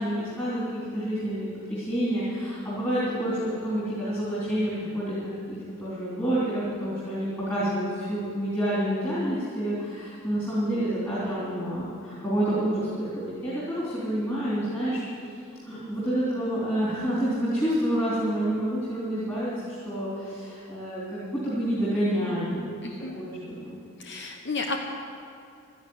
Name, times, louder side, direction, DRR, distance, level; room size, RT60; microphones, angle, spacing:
voice 1, 0.0-15.0 15.7-22.7 23.1-23.8, right 1 dB, 15° left, -10 dB, 3.7 m, -28 dB
voice 2, 22.8-23.2 24.0-24.8, left 3 dB, 55° left, 3 dB, 1.0 m, -32 dB
13.0 x 10.5 x 9.6 m, 2.4 s
head